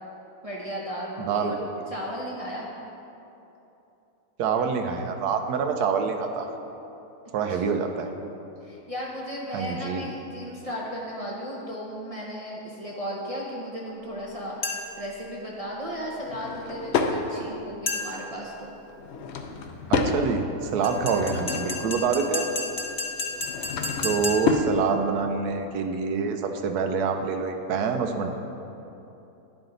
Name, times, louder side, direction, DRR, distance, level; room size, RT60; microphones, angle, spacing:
voice 1, 0.4-1.6 1.9-2.7 7.5-7.8 8.6-14.7 15.0-18.7, equal, 35° right, -5 dB, 0.5 m, -35 dB
voice 2, 1.2-1.5 4.4-6.5 7.3-8.1 9.5-10.1 19.9-22.5 24.0-28.3, right 5 dB, 80° right, 6 dB, 1.1 m, -26 dB
sound 1, 14.6-15.1 17.9-18.4 20.8-24.7, left 3 dB, 45° left, 1.0 m, -32 dB
Drawer open or close / Wood, 16.2-17.2 18.9-20.2 20.7-21.9 23.2-24.7, left 4 dB, 70° left, 0.6 m, -29 dB
10.5 x 4.9 x 3.8 m, 2.9 s
omnidirectional pair, 1.7 m